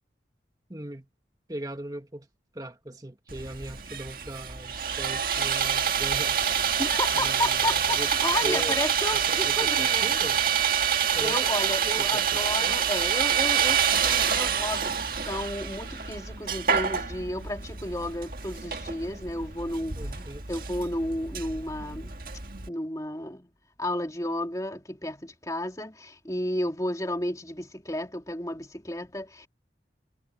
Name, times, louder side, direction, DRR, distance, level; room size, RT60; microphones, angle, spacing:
voice 1, 0.7-1.1 1.5-2.3 2.5-6.6 7.1-8.8 9.1-10.4 11.1-11.4 12.0-12.8 20.0-20.4, right 1 dB, 20° right, 1.7 m, -39 dB
Sawing, 3.3-22.7, right 8 dB, 55° right, 1.8 m, -27 dB
voice 2, 6.8-10.2 10.8-20.0 20.5-22.2 22.7-23.5 23.8-29.5, left 1 dB, 20° left, 3.0 m, -32 dB
head